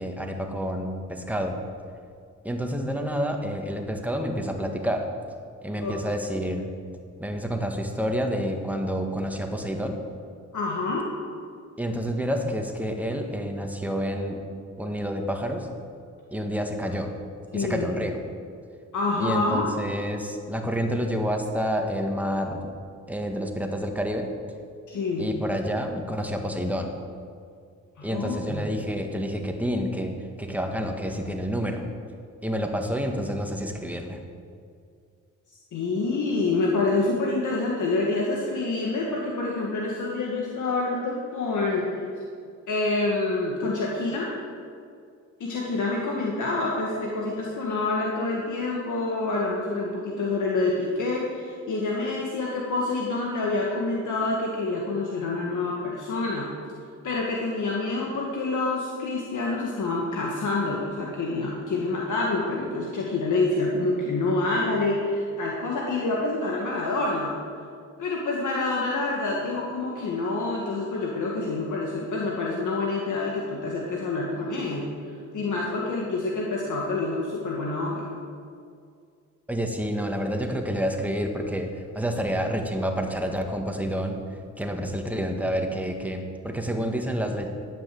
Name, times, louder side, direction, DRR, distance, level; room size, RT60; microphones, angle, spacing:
voice 1, 0.0-1.6 2.4-5.0 5.6-6.7 7.2-10.0 11.8-14.4 14.8-15.7 16.3-17.1 17.5-18.2 19.2-22.7 23.1-24.3 25.2-27.0 28.0-30.1 30.4-31.8 32.4-34.2 79.5-87.5, equal, 5° right, 3 dB, 1.7 m, -29 dB
voice 2, 10.5-11.1 17.5-17.8 18.9-19.7 24.9-25.3 28.0-28.6 35.7-42.0 42.7-44.3 45.4-56.5 57.0-67.4 68.0-78.1, left 3 dB, 80° left, -2 dB, 1.7 m, -27 dB
11.5 x 9.3 x 7.6 m, 2.3 s
cardioid pair, 95°, 30 cm